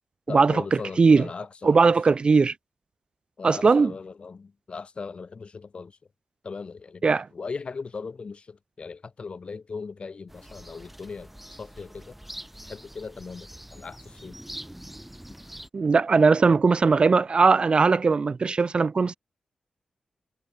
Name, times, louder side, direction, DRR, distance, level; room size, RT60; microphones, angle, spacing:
voice 1, 0.3-1.9 3.4-6.0 6.4-7.0 7.3-11.3 11.6-12.2 12.6-14.4, left 4 dB, 55° left, 3.1 m, -38 dB
voice 2, 1.6-2.5 3.4-3.9 7.0-7.3 15.7-19.2, right 4 dB, 50° right, 0.4 m, -19 dB
sound 1, 10.3-15.7, equal, 5° right, 3.0 m, -44 dB
cardioid pair, 55°, 2 cm